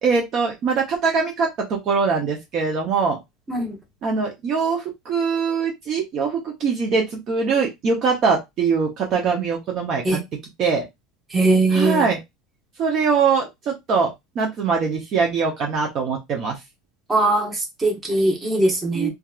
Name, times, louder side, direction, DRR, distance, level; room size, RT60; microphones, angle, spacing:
voice 1, 0.0-3.2 4.0-10.2 10.6-10.8 11.7-12.2 12.8-16.6 18.9-19.1, right 5 dB, 45° right, 0.7 m, -22 dB
voice 2, 11.3-12.1 17.1-19.1, right 2 dB, 20° right, 1.0 m, -20 dB
2.7 x 2.4 x 2.3 m
supercardioid pair, 120°, 0 cm